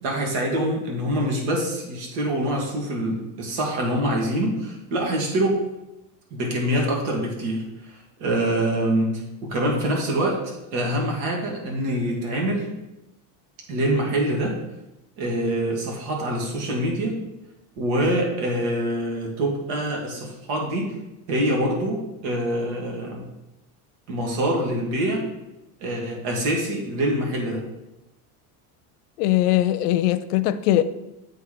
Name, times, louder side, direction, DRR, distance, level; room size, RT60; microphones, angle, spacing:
voice 1, 0.0-5.6 6.3-12.7 13.7-14.5 15.2-17.1 17.8-20.9 21.3-23.2 24.1-25.2 25.8-27.6, right 1 dB, 60° right, 2.7 m, -25 dB
voice 2, 29.2-30.8, left 14 dB, 90° left, 0.7 m, -20 dB
8.1 x 4.5 x 5.1 m
supercardioid pair, 135°, 45 cm